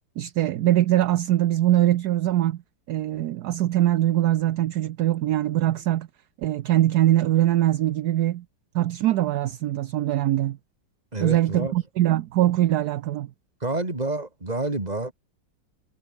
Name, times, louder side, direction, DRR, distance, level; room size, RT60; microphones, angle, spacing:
voice 1, 0.2-2.6 2.9-6.1 6.4-8.4 8.7-10.6 11.2-13.3, right 13 dB, 65° right, 1.1 m, -22 dB
voice 2, 11.1-11.7 13.6-15.1, right 2 dB, 20° right, 3.1 m, -28 dB
omnidirectional pair, 2.0 m